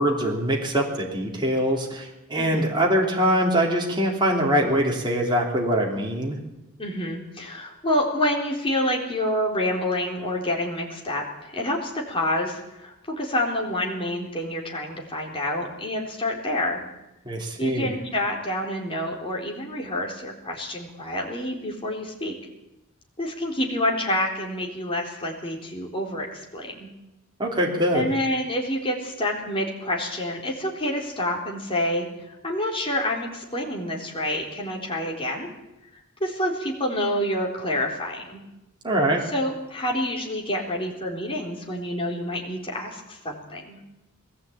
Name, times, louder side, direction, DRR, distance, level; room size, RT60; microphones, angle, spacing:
voice 1, 0.0-6.4 17.3-17.9 27.4-28.1 38.8-39.2, equal, 20° right, -2 dB, 3.5 m, -23 dB
voice 2, 2.4-2.7 6.8-16.8 17.6-22.3 23.2-26.9 27.9-32.1 32.4-35.5 36.2-38.4 39.3-43.8, left 1 dB, 25° left, -1 dB, 4.0 m, -28 dB
20.5 x 15.5 x 8.9 m, 0.92 s
head